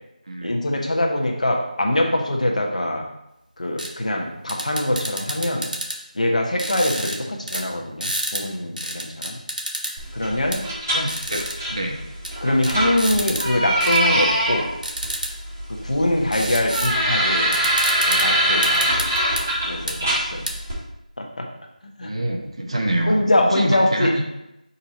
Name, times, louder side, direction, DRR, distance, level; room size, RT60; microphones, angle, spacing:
voice 1, 0.4-3.1 3.6-5.7 6.1-9.4 10.1-10.6 11.3-11.4 12.4-14.7 15.7-17.6 18.1-19.1 19.7-20.5 21.2-21.5 22.0-22.1 23.1-24.1, left 1 dB, 55° left, 1 dB, 1.2 m, -23 dB
sound 1, 3.8-3.9 4.5-6.0 6.6-7.2 7.5-7.6 8.0-8.4 8.8-9.9 10.5-10.6 11.1-11.6 12.2-12.3 12.6-13.5 13.8-14.0 14.8-15.3 16.3-16.9 17.2-17.3 17.5-18.3 18.6-19.4 19.9-20.0 20.5-20.6, right 1 dB, 75° right, 1.2 m, -28 dB
sound 2, 10.0-20.7, right 1 dB, 20° right, 1.8 m, -24 dB
voice 2, 10.9-11.4 11.7-12.0 15.9-16.0 22.0-23.2 23.5-24.3, right 1 dB, 45° right, 1 dB, 1.0 m, -26 dB
5.5 x 4.3 x 4.2 m, 0.86 s
figure-of-eight pair, 170°, 5 cm